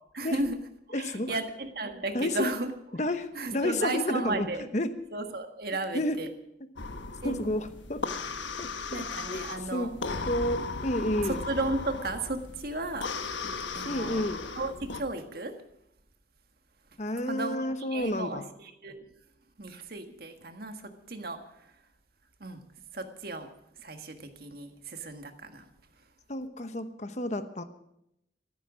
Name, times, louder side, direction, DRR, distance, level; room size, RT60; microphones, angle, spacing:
voice 1, 0.1-0.6 0.9-2.7 3.3-4.6 5.1-6.3 7.2-7.4 8.9-9.9 11.2-13.1 13.4-14.2 14.6-15.5 17.2-17.7 17.9-19.0 19.6-21.4 22.4-22.6 22.9-23.5 23.8-25.7, right 2 dB, 55° right, 6 dB, 1.7 m, -34 dB
voice 2, 0.9-1.4 2.1-2.5 2.9-4.5 4.7-4.9 5.9-6.2 7.2-8.0 8.6-9.5 9.7-9.9 10.3-11.4 13.8-14.4 17.0-18.4 26.3-27.6, left 1 dB, 40° left, 10 dB, 1.0 m, -30 dB
sound 1, 6.8-15.0, left 4 dB, 90° left, 1.4 m, -36 dB
14.5 x 14.0 x 6.2 m, 0.79 s
head